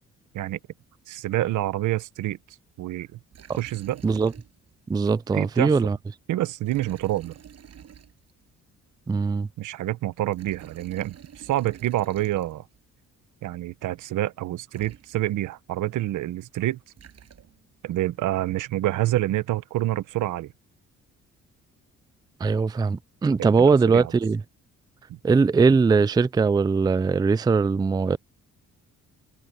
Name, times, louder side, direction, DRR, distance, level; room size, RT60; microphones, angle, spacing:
voice 1, 1.1-2.4 2.8-3.2 3.6-4.0 5.3-5.9 6.3-7.3 9.6-12.7 13.4-16.8 17.8-20.5 23.4-24.1 25.1-25.2, right 15 dB, 80° right, 1.2 m, -27 dB
Liquid, 3.3-4.8 5.1-5.2 6.6-8.5 10.1-12.8 14.4-14.5 14.7-15.5 16.7-17.8, right 8 dB, 55° right, 6.7 m, -49 dB
voice 2, 4.9-6.0 9.1-9.5 22.4-24.4 25.2-28.2, right 4 dB, 15° right, 0.4 m, -21 dB
cardioid pair, 90°, 30 cm